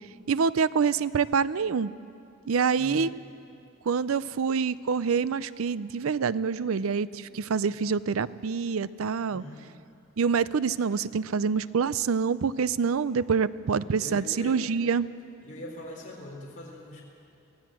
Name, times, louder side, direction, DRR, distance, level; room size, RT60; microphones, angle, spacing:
voice 1, 0.3-1.9 2.5-3.1 3.9-9.4 10.2-15.1, right 5 dB, 80° right, 17 dB, 0.5 m, -26 dB
voice 2, 2.8-3.2 9.3-9.7 13.8-14.7 15.4-17.1, left 1 dB, 40° left, -3 dB, 4.0 m, -42 dB
23.5 x 16.0 x 7.6 m, 2.5 s
head